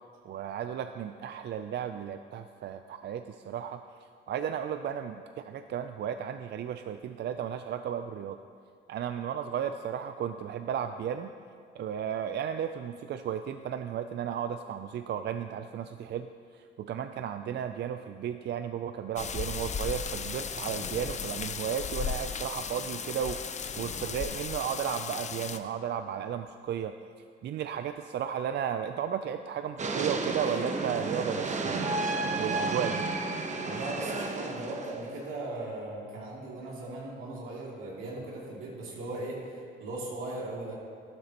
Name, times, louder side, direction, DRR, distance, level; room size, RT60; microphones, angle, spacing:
voice 1, 0.3-3.8 4.3-8.4 8.9-11.3 11.8-26.9 27.4-31.9 32.4-33.1, right 8 dB, 60° right, 8 dB, 0.4 m, -34 dB
sound 1, 19.2-25.6, left 6 dB, 35° left, 0.6 m, -36 dB
sound 2, 29.8-35.2, right 3 dB, 35° right, 1.0 m, -32 dB
voice 2, 33.6-40.7, right 2 dB, 90° right, -4 dB, 2.7 m, -38 dB
13.0 x 12.5 x 3.0 m, 2.3 s
cardioid pair, 90°, 20 cm